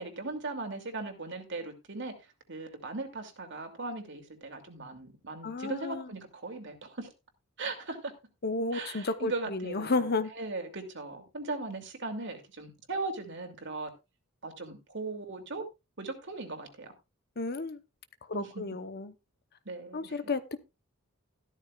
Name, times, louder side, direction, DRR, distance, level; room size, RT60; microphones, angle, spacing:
voice 1, 0.0-2.1 2.5-7.1 7.6-8.1 8.7-10.1 10.3-13.9 14.4-15.7 16.0-16.9 18.3-18.8 19.6-20.2, right 3 dB, 55° right, 2.7 m, -38 dB
voice 2, 5.4-6.1 8.4-10.3 17.4-17.8 18.3-19.1 19.9-20.6, left 3 dB, 45° left, 0.9 m, -32 dB
14.0 x 12.5 x 2.4 m
head